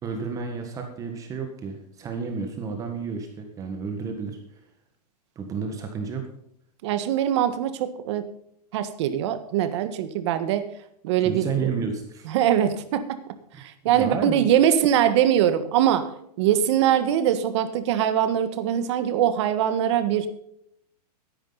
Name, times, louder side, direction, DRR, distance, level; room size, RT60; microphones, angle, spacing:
voice 1, 0.0-4.4 5.3-6.3 11.2-12.3 13.8-14.5, right 5 dB, 15° right, 5 dB, 1.6 m, -31 dB
voice 2, 6.8-8.2 8.7-10.6 11.0-11.7 12.2-13.2 13.6-20.3, right 10 dB, 45° right, 11 dB, 1.6 m, -22 dB
14.0 x 10.5 x 4.1 m, 0.72 s
supercardioid pair, 165°, 20 cm